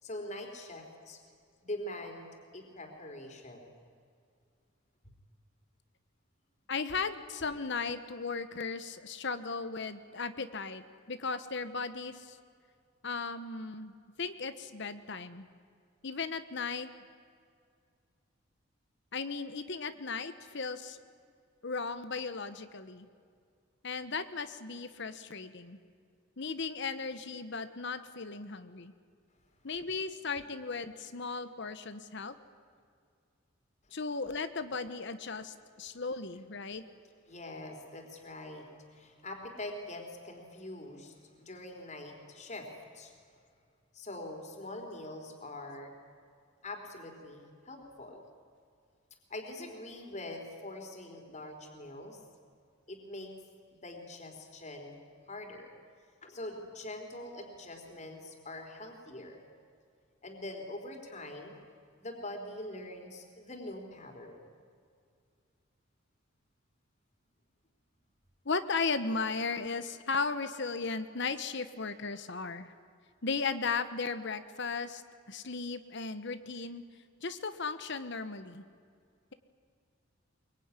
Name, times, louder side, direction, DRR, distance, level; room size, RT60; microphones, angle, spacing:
voice 1, 0.0-1.2 1.6-3.7 37.3-43.1 43.9-45.9 46.6-48.2 49.3-52.2 52.9-53.3 53.8-55.0 55.3-55.7 56.2-59.4 60.2-61.5 62.0-64.5, left 1 dB, 35° left, 3 dB, 3.7 m, -44 dB
voice 2, 6.7-12.4 13.0-13.9 14.2-15.5 16.0-16.9 19.1-21.0 21.6-23.1 23.8-25.8 26.4-28.9 29.6-32.3 33.9-36.8 68.4-72.7 73.2-75.0 75.3-76.8 77.2-78.6, left 4 dB, 60° left, 11 dB, 1.1 m, -36 dB
23.0 x 23.0 x 9.8 m, 2.2 s
head